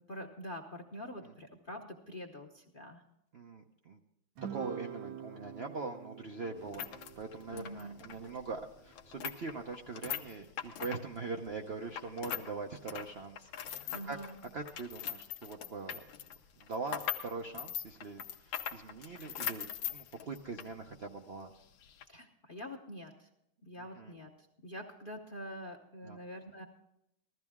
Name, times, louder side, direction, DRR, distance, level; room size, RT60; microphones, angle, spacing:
voice 1, 0.1-3.0 7.5-8.0 13.9-14.4 22.1-23.3 23.6-26.6, equal, 40° left, 4 dB, 0.8 m, -45 dB
voice 2, 3.3-4.0 4.4-6.9 7.2-14.2 14.5-16.1 16.6-21.5 23.8-24.1 26.0-26.2, right 4 dB, 60° right, 3 dB, 0.6 m, -42 dB
Guitar, 4.4-9.0, right 9 dB, 85° right, 1.8 m, -47 dB
sound 1, 6.6-12.5 12.8-20.7 21.0-21.1 21.8-22.0, left 10 dB, 75° left, 1.6 m, -41 dB
15.0 x 14.0 x 3.6 m, 0.80 s
omnidirectional pair, 2.2 m